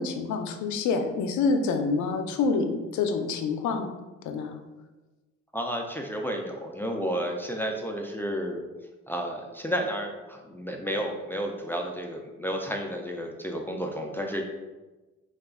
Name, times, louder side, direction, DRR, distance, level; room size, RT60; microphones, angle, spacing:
voice 1, 0.0-3.9 4.2-4.6, left 4 dB, 70° left, 6 dB, 0.5 m, -27 dB
voice 2, 5.5-8.6 9.1-14.4, equal, 5° left, 1 dB, 0.3 m, -31 dB
2.9 x 2.4 x 3.5 m, 1.2 s
cardioid pair, 90°, 30 cm